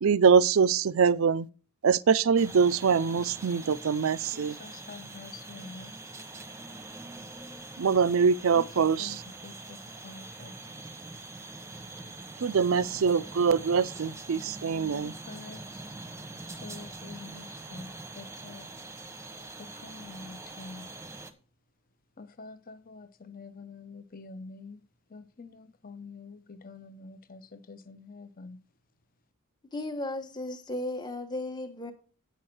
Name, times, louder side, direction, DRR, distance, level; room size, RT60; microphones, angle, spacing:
voice 1, 0.0-1.5 1.8-4.6 7.8-9.2 12.4-15.1, right 6 dB, 65° right, 0.4 m, -24 dB
sound 1, 2.4-21.3, right 2 dB, 10° right, 0.9 m, -44 dB
voice 2, 4.3-5.9 8.5-10.5 15.0-15.8 16.5-18.7 19.6-20.9 22.2-24.8 25.1-28.6, left 4 dB, 40° left, 0.7 m, -47 dB
voice 3, 29.7-31.9, left 1 dB, 20° left, 1.1 m, -35 dB
9.3 x 6.4 x 6.0 m
head